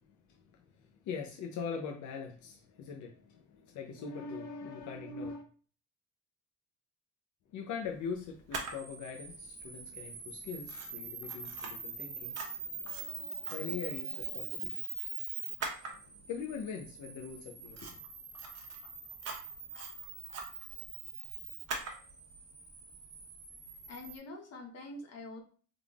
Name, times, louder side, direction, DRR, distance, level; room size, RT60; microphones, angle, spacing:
voice 1, 0.0-5.5 7.5-14.8 15.9-18.0, left 5 dB, 75° left, 0.7 m, -42 dB
Camera, 8.5-24.2, right 4 dB, 55° right, 1.1 m, -42 dB
voice 2, 23.9-25.4, left 2 dB, 55° left, 1.0 m, -45 dB
3.6 x 3.4 x 2.4 m
cardioid pair, 90°, 30 cm